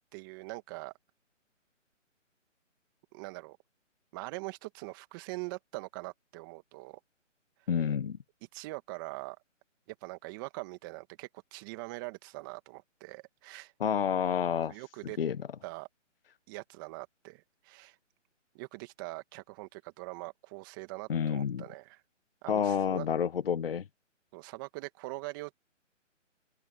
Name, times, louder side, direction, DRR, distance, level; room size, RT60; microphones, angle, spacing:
voice 1, 0.1-0.9 3.1-3.6 4.1-7.0 8.5-9.4 10.0-13.7 14.7-15.2 15.6-15.9 16.5-18.0 18.5-22.0 22.4-23.1 24.3-25.5, right 24 dB, 15° right, 2.0 m, -42 dB
voice 2, 7.7-8.2 13.8-14.8 15.2-15.4 21.1-21.6 22.5-23.9, left 7 dB, 50° left, 1.0 m, -29 dB
open air
hypercardioid pair, 160°, 38 cm